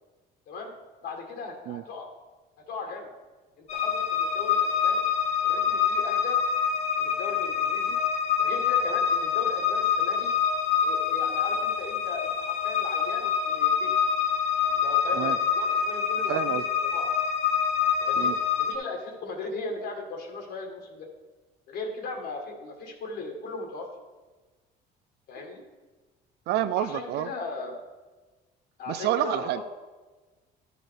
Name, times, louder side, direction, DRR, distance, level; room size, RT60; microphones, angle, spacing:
voice 1, 1.0-2.1 2.7-3.1 3.6-5.1 5.4-6.4 7.0-8.0 8.4-10.3 10.8-13.9 14.7-17.1 18.0-18.3 18.6-21.1 21.7-23.9 25.3-25.6 26.8-27.7 28.8-29.6, left 3 dB, 65° left, 2 dB, 1.7 m, -37 dB
sound 1, 3.7-18.7, left 7 dB, 40° left, 1.1 m, -26 dB
voice 2, 16.3-16.6 18.2-18.4 26.5-27.3 28.9-29.6, right 13 dB, 70° right, 13 dB, 0.4 m, -28 dB
12.0 x 4.9 x 4.5 m, 1.3 s
cardioid pair, 120°, 18 cm